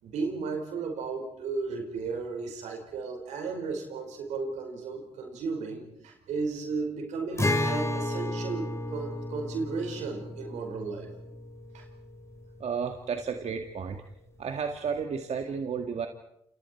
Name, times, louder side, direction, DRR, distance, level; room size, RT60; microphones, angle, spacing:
voice 1, 0.0-11.1 11.7-11.9, right 4 dB, 90° right, 3 dB, 5.0 m, -34 dB
Acoustic guitar, 7.4-12.9, left 1 dB, 25° left, 5.1 m, -33 dB
voice 2, 12.6-14.0 14.4-16.1, right 6 dB, 70° right, 5 dB, 1.9 m, -32 dB
28.5 x 28.5 x 4.6 m, 0.75 s
supercardioid pair, 50°, 12 cm